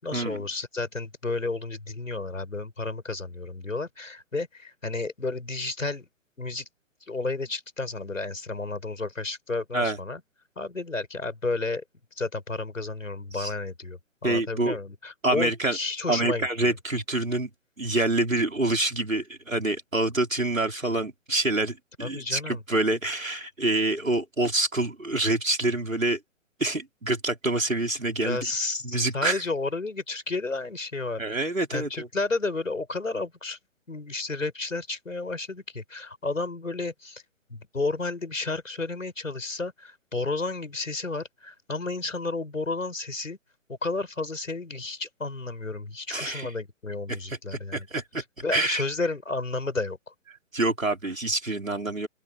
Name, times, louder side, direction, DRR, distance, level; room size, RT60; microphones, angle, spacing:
voice 1, 0.0-6.1 6.4-6.7 7.1-10.2 10.6-11.8 12.2-16.7 22.0-22.6 28.2-33.6 33.9-37.2 37.5-43.4 43.7-47.9 48.4-50.0, left 3 dB, 80° left, 7.7 m, -32 dB
voice 2, 14.2-14.8 15.2-15.8 16.1-17.5 17.8-26.2 26.6-28.5 28.8-29.4 31.2-32.1 46.1-46.5 47.3-48.2 48.5-48.8 50.5-52.1, right 2 dB, 85° right, 5.0 m, -26 dB
open air
figure-of-eight pair, 130°, 39 cm